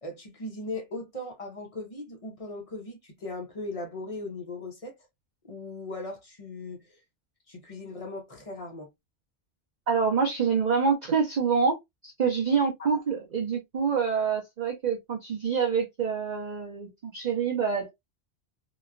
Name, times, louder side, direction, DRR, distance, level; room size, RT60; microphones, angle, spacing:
voice 1, 0.0-5.0 5.4-7.0 7.5-8.9 12.8-13.0, left 2 dB, 35° left, 0.8 m, -38 dB
voice 2, 9.9-11.8 12.0-17.9, right 6 dB, 50° right, 0.6 m, -26 dB
2.9 x 2.2 x 2.3 m
omnidirectional pair, 1.1 m